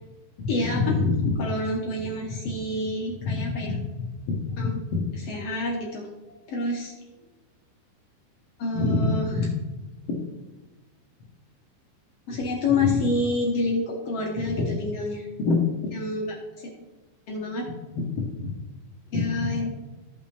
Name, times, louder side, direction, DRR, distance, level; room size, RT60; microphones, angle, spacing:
voice 1, 0.4-3.9 4.3-6.9 8.6-9.5 10.1-10.2 12.3-16.3 17.3-18.0 18.3-18.5 19.1-19.7, left 3 dB, 70° left, -2 dB, 1.5 m, -26 dB
14.5 x 5.4 x 3.4 m, 1.2 s
omnidirectional pair, 4.5 m